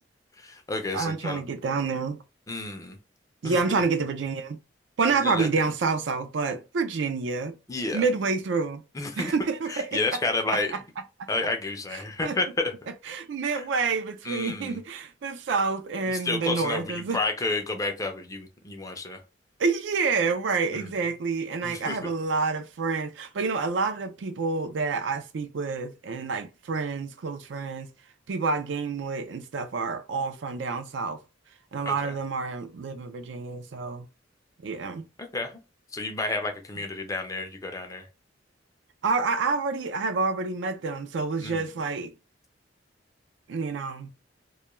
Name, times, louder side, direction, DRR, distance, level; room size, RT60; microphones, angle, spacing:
voice 1, 0.4-1.4 2.5-3.0 3.4-3.6 5.2-5.5 7.7-8.0 8.9-9.3 9.7-10.7 11.3-12.7 13.5-13.6 14.2-14.8 16.1-19.2 20.7-20.9 21.6-22.1 31.9-32.1 35.3-35.5 35.9-38.1 41.4-41.7, left 3 dB, 20° left, 0.4 m, -30 dB
voice 2, 0.9-2.2 3.4-4.6 5.0-7.6 7.9-8.8 9.2-10.0 11.2-11.3 11.9-12.4 13.1-17.2 19.6-27.9 28.3-31.2 31.7-34.1 34.6-35.1 39.0-42.1 43.5-44.1, right 4 dB, 70° right, 0.4 m, -28 dB
2.3 x 2.2 x 3.0 m
head